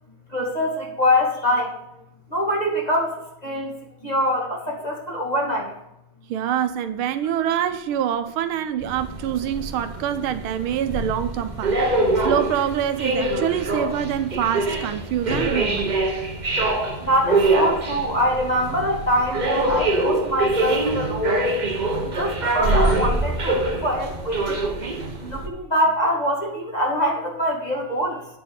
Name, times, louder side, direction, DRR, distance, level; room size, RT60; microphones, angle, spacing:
voice 1, 0.3-1.7 2.3-3.7 4.0-5.7 17.0-21.4 22.2-24.7 25.2-28.3, equal, 20° left, 2.0 m, -24 dB
voice 2, 6.3-11.8 12.2-15.9, right 10 dB, 80° right, 1.4 m, -25 dB
sound 1, 8.8-25.5, right 2 dB, 40° right, 0.6 m, -24 dB
9.1 x 4.6 x 6.8 m
omnidirectional pair, 2.4 m